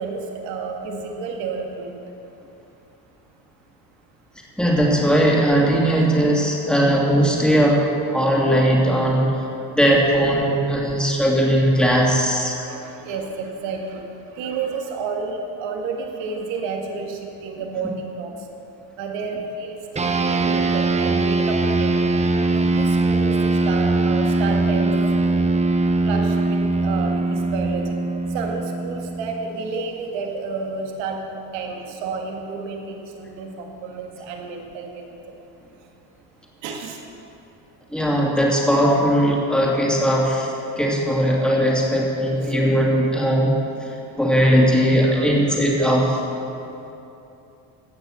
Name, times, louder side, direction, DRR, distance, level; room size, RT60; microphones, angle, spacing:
voice 1, 0.0-2.0 12.6-14.0 14.3-18.3 19.0-22.1 22.5-25.0 26.0-28.0 28.3-31.2 31.5-35.1 36.6-37.0 42.4-42.5 42.9-43.0 45.1-45.6 45.8-46.0 46.6-46.7, right 4 dB, 75° right, 2 dB, 1.9 m, -31 dB
voice 2, 4.6-7.8 8.1-9.4 9.7-12.6 37.9-40.5 40.8-46.2, equal, ahead, -3 dB, 2.7 m, -19 dB
sound 1, 20.0-29.7, right 2 dB, 15° right, 0.6 m, -21 dB
16.5 x 6.6 x 6.4 m, 2.8 s
supercardioid pair, 105°, 46 cm